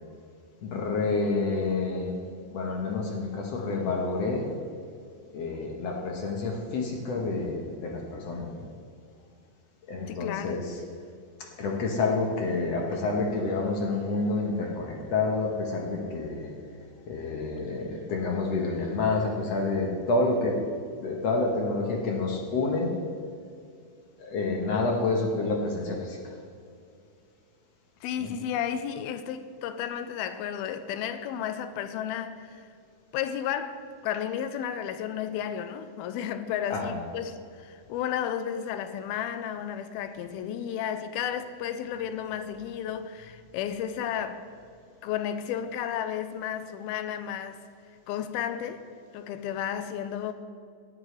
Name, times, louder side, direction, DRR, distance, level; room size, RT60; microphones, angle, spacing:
voice 1, 0.6-2.1 2.5-4.4 5.3-8.6 9.9-10.6 11.6-16.5 17.1-20.5 21.0-22.9 24.2-26.2 28.2-28.3 36.7-36.9, left 3 dB, 65° left, 1.7 m, -28 dB
voice 2, 10.1-10.7 28.0-32.7 33.1-44.4 45.0-47.6 48.1-48.8 49.1-50.3, left 9 dB, 85° left, 2.5 m, -33 dB
17.5 x 10.0 x 3.3 m
omnidirectional pair, 4.3 m